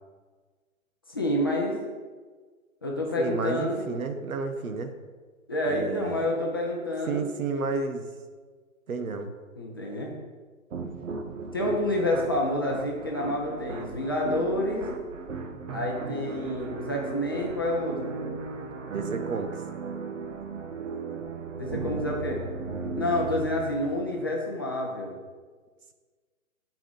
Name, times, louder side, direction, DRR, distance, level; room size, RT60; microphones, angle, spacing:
voice 1, 1.1-1.8 2.8-3.8 5.5-7.3 9.6-10.1 11.5-14.9 15.7-18.1 21.5-22.4 22.9-25.2, left 1 dB, 20° left, -2 dB, 0.5 m, -28 dB
voice 2, 3.2-4.9 5.6-6.3 7.1-8.1 8.9-9.3 18.9-19.6, right 4 dB, 85° right, 7 dB, 1.3 m, -31 dB
sound 1, 10.7-24.4, right 4 dB, 65° right, 1.0 m, -36 dB
13.0 x 4.8 x 3.9 m, 1.5 s
hypercardioid pair, 165°, 41 cm